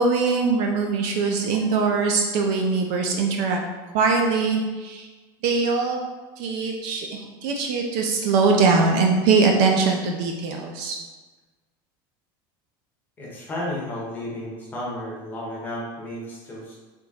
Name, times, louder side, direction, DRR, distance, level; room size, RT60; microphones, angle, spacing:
voice 1, 0.0-3.6 3.9-5.1 5.4-6.0 6.4-11.0, right 4 dB, 50° right, 1 dB, 0.4 m, -22 dB
voice 2, 13.2-16.8, left 1 dB, 15° left, -5 dB, 0.8 m, -33 dB
3.6 x 2.9 x 4.1 m, 1.3 s
cardioid pair, 180°, 12 cm